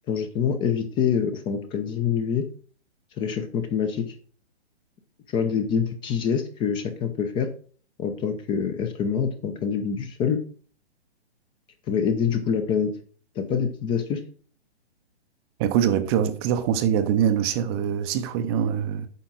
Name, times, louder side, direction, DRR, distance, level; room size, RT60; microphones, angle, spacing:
voice 1, 0.1-2.5 3.2-4.1 5.3-7.5 8.0-10.4 11.9-12.9 13.4-14.2, left 7 dB, 15° left, 0.6 m, -25 dB
voice 2, 15.6-19.1, right 9 dB, 25° right, 0.6 m, -23 dB
9.0 x 6.1 x 3.9 m
figure-of-eight pair, 130°, 33 cm